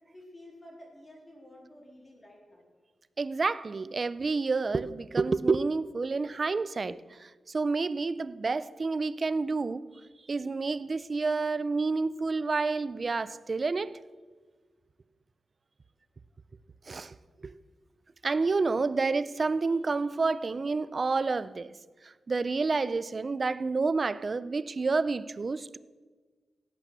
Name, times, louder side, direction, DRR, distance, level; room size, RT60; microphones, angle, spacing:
voice 1, 0.1-2.6, left 1 dB, 20° left, 3.7 m, -51 dB
voice 2, 3.2-9.8 10.3-14.0 16.9-17.1 17.4-17.5 18.2-21.7 22.0-25.8, right 4 dB, 40° right, 0.5 m, -29 dB
16.0 x 9.3 x 6.1 m
wide cardioid pair, 110°, 0 cm